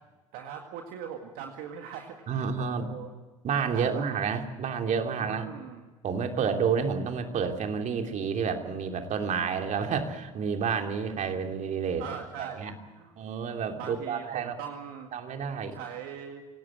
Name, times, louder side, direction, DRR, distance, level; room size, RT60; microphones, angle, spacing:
voice 1, 0.3-3.1 3.7-4.1 5.2-5.8 12.0-13.1 13.8-15.1 15.7-16.4, right 8 dB, 65° right, 4 dB, 2.0 m, -41 dB
voice 2, 2.3-2.9 3.4-5.5 6.0-12.0 12.4-12.7 13.2-14.5 15.1-15.8, right 6 dB, 50° right, 4 dB, 3.0 m, -30 dB
26.0 x 18.0 x 7.6 m, 1.3 s
hypercardioid pair, 60°, 16 cm